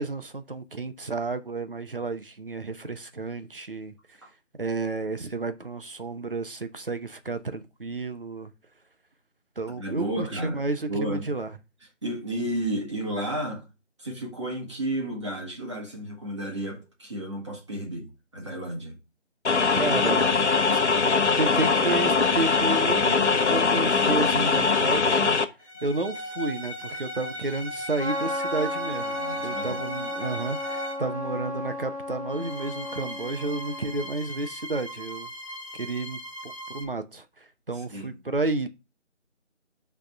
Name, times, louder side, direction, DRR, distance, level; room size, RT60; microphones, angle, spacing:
voice 1, 0.0-3.9 4.6-8.5 9.6-11.5 19.7-20.3 20.7-20.8 21.4-25.3 25.8-29.2 29.4-35.3 35.8-37.3 37.7-38.7, right 3 dB, 50° right, 0.8 m, -31 dB
voice 2, 9.7-10.6 10.9-11.3 12.0-13.7 14.0-19.0 29.1-29.8 37.7-38.1, right 1 dB, 25° right, 1.8 m, -32 dB
sound 1, 19.4-25.4, left 4 dB, 65° left, 1.0 m, -22 dB
sound 2, 20.1-24.5 25.6-31.1 32.3-36.8, left 2 dB, 25° left, 1.6 m, -37 dB
Trumpet, 28.0-34.2, left 1 dB, 5° left, 2.3 m, -34 dB
6.2 x 3.5 x 5.7 m
figure-of-eight pair, 175°, 37 cm